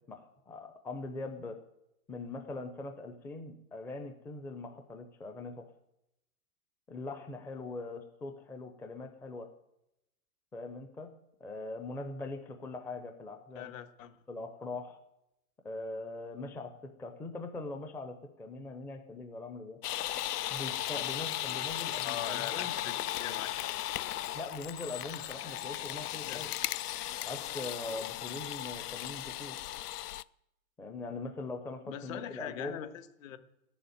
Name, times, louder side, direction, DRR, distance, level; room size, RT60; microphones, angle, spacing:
voice 1, 0.1-1.6 2.1-5.7 6.9-9.5 10.5-11.1 11.4-13.7 14.3-15.0 15.6-19.8 20.5-22.8 24.3-26.5 27.3-29.6 30.8-32.8, left 2 dB, 5° left, 6 dB, 0.5 m, -41 dB
voice 2, 13.5-14.2 22.0-23.7 26.2-26.4 31.8-33.4, left 10 dB, 55° left, 9 dB, 1.5 m, -42 dB
sound 1, 19.8-30.2, left 14 dB, 75° left, 0.6 m, -36 dB
14.5 x 7.1 x 9.3 m, 0.86 s
hypercardioid pair, 125°, 46 cm